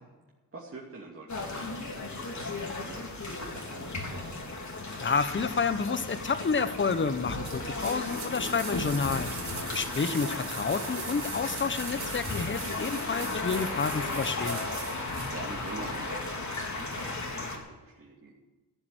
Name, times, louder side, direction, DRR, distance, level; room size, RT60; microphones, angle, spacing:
voice 1, 0.5-4.5 9.8-10.2 15.3-18.3, right 3 dB, 35° right, -3 dB, 2.7 m, -46 dB
sound 1, 1.3-17.6, left 3 dB, 45° left, 3.7 m, -35 dB
voice 2, 5.0-9.3 9.7-14.6, left 5 dB, 30° left, 12 dB, 1.1 m, -29 dB
sound 2, 7.4-15.4 15.7-15.8, right 6 dB, 65° right, 2.5 m, -41 dB
14.0 x 7.3 x 9.9 m, 1.2 s
cardioid pair, 60°, 40 cm